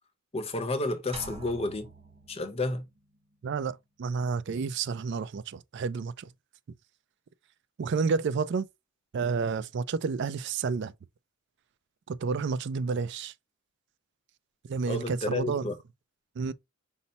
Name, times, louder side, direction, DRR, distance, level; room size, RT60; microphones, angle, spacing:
voice 1, 0.3-1.9 2.3-2.8 14.9-15.7, left 2 dB, 25° left, 0.7 m, -31 dB
sound 1, 1.1-3.0, right 3 dB, 25° right, 0.7 m, -46 dB
voice 2, 3.4-6.3 7.8-8.7 9.1-10.9 12.1-13.3 14.7-15.7 16.4-16.5, right 5 dB, 50° right, 0.3 m, -30 dB
5.5 x 2.0 x 3.9 m
head